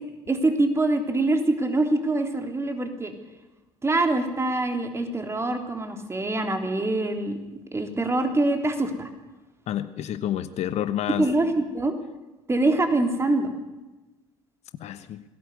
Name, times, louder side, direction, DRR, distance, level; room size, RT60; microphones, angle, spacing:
voice 1, 0.3-3.1 3.8-7.4 7.7-9.1 11.1-11.9 12.5-13.5, right 2 dB, 20° right, 5 dB, 3.5 m, -24 dB
voice 2, 9.7-11.3 14.8-15.2, left 11 dB, 50° left, 12 dB, 1.1 m, -29 dB
20.5 x 17.0 x 8.1 m, 1.1 s
figure-of-eight pair, 60°, 15 cm